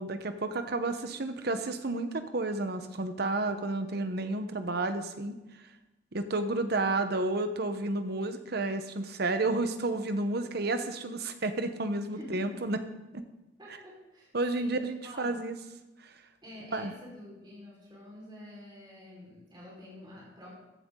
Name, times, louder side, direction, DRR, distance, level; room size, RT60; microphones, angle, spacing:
voice 1, 0.0-5.4 6.1-12.8 13.1-13.2 14.3-15.5 16.7-16.9, right 2 dB, 60° right, 8 dB, 1.0 m, -31 dB
voice 2, 12.1-12.6 13.6-15.4 16.4-20.6, left 1 dB, 25° right, -5 dB, 4.8 m, -48 dB
15.5 x 11.5 x 3.9 m, 1.0 s
head